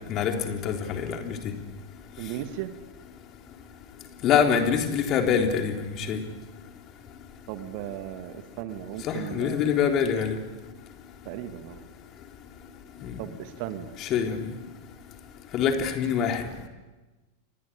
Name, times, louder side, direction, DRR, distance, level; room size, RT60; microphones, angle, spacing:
voice 1, 0.1-1.4 4.2-6.2 9.0-10.4 13.0-13.1 14.0-14.5 15.5-16.7, left 7 dB, 35° left, 4 dB, 3.7 m, -25 dB
voice 2, 2.2-2.8 7.5-10.0 11.3-11.9 13.2-13.9, right 11 dB, 45° right, 10 dB, 2.0 m, -36 dB
28.5 x 23.5 x 8.7 m, 1.2 s
figure-of-eight pair, 90°, 0 cm